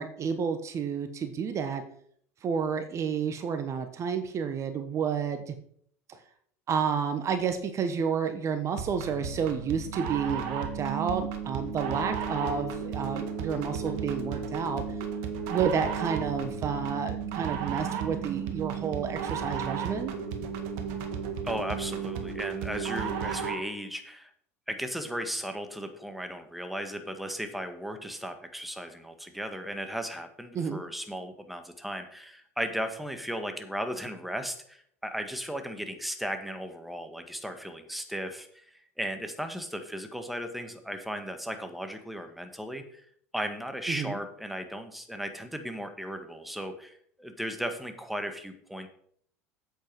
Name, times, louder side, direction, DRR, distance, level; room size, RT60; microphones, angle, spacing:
voice 1, 0.0-1.8 2.4-5.5 6.7-14.8 15.5-20.1 30.5-30.8 43.9-44.2, right 6 dB, 40° right, 9 dB, 1.2 m, -30 dB
sound 1, 8.8-23.7, right 6 dB, 60° right, 1.7 m, -34 dB
voice 2, 21.4-24.3 24.7-38.6 39.0-43.0 43.3-48.9, equal, ahead, 7 dB, 1.6 m, -36 dB
8.9 x 8.3 x 4.7 m, 0.63 s
hypercardioid pair, 75°, 8 cm